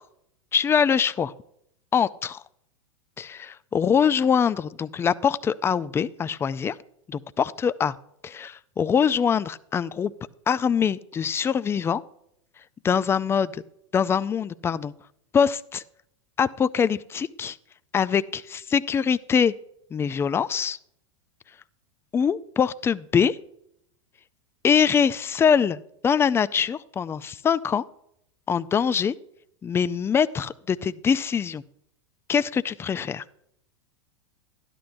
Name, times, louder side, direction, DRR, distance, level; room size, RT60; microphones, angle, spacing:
voice 1, 0.5-1.3 1.9-2.4 3.2-6.8 7.1-7.9 8.2-10.1 10.5-12.0 12.8-13.6 13.9-14.9 15.3-15.8 16.4-17.6 17.9-19.5 19.9-20.8 22.1-23.4 24.6-27.8 28.5-29.1 29.6-31.6 32.3-33.2, left 7 dB, 15° left, 16 dB, 0.3 m, -23 dB
12.5 x 11.5 x 2.6 m, 0.74 s
hypercardioid pair, 100°, 17 cm